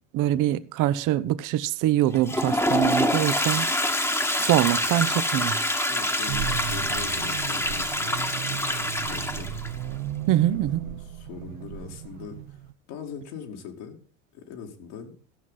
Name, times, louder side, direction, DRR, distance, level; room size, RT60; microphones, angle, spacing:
voice 1, 0.1-3.7 4.4-5.6 10.3-10.8, right 13 dB, 55° right, 0.9 m, -24 dB
Toilet flush, 2.1-9.7, left 1 dB, 5° left, 1.3 m, -26 dB
voice 2, 5.9-9.5 10.5-10.6 10.8-12.6 12.9-14.0 14.3-15.1, left 6 dB, 70° left, 2.6 m, -41 dB
sound 1, 6.3-12.7, right 10 dB, 80° right, 0.9 m, -35 dB
14.5 x 6.1 x 5.6 m
hypercardioid pair, 80°, 38 cm